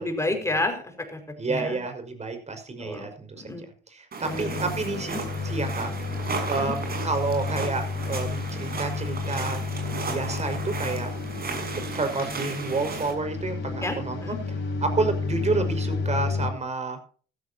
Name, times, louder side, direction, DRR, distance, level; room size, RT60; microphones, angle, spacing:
voice 1, 0.0-1.2 1.5-1.8 2.8-3.1 3.3-3.7 4.2-4.7 5.1-5.2 6.5-6.7 13.8-14.4, left 2 dB, 15° left, 5 dB, 5.4 m, -30 dB
voice 2, 1.4-3.5 3.9-5.1 5.4-5.9 6.4-9.6 10.0-11.1 11.7-14.4 14.8-17.0, right 3 dB, 35° right, 7 dB, 5.4 m, -29 dB
sound 1, 4.1-13.1, right 4 dB, 50° right, 7.0 m, -35 dB
sound 2, 4.2-16.5, left 4 dB, 75° left, 4.5 m, -31 dB
15.5 x 14.0 x 2.9 m, 0.40 s
cardioid pair, 90°, 20 cm